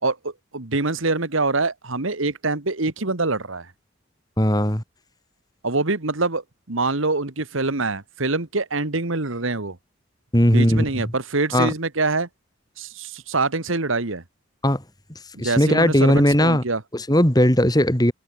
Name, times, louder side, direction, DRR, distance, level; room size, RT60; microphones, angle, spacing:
voice 1, 0.0-3.7 5.6-9.8 10.5-12.3 12.8-14.2 15.3-16.8, right 3 dB, 70° right, 1.8 m, -25 dB
voice 2, 4.4-4.8 10.3-10.8 11.5-11.7 14.6-14.8 15.4-16.6 16.9-18.1, left 1 dB, 20° left, 2.8 m, -18 dB
head